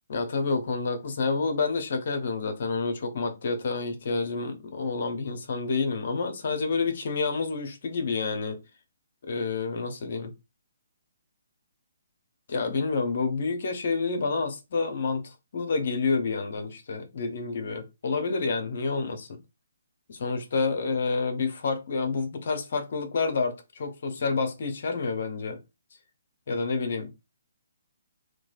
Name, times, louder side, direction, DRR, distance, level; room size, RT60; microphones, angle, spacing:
voice 1, 0.1-8.6 9.2-10.3 12.5-19.4 20.1-25.6 26.5-27.1, left 4 dB, 60° left, 0.7 m, -29 dB
3.1 x 2.3 x 2.3 m
hypercardioid pair, 140°, 0 cm